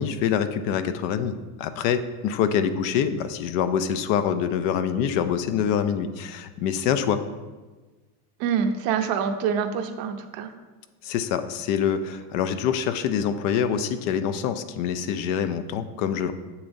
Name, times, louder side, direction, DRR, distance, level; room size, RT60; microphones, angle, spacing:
voice 1, 0.0-7.3 11.0-16.3, left 8 dB, 60° left, 10 dB, 0.6 m, -25 dB
voice 2, 8.4-10.5, right 7 dB, 50° right, 8 dB, 0.7 m, -26 dB
7.0 x 6.9 x 2.6 m, 1.3 s
supercardioid pair, 130°, 46 cm